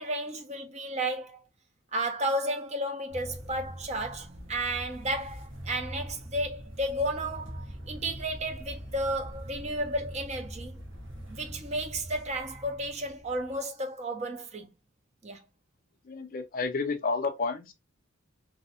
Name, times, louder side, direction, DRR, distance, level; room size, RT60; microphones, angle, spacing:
voice 1, 0.0-1.4 1.9-10.8 11.3-14.7 15.2-15.4, right 1 dB, 30° right, 0.4 m, -33 dB
sound 1, 3.1-13.6, equal, 65° right, 1.0 m, -43 dB
voice 2, 16.0-17.7, left 4 dB, 40° left, 0.4 m, -30 dB
2.6 x 2.0 x 2.7 m
head